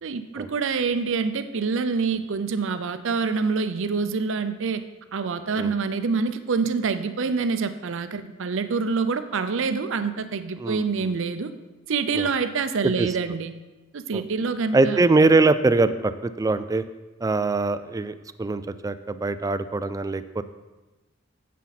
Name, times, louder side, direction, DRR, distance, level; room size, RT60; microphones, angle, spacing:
voice 1, 0.0-4.8 5.1-11.5 11.9-13.5 13.9-15.0, right 4 dB, 65° right, 10 dB, 0.6 m, -26 dB
voice 2, 14.7-16.8 17.2-20.4, right 3 dB, 15° right, 12 dB, 0.3 m, -22 dB
9.7 x 7.4 x 4.1 m, 1.2 s
head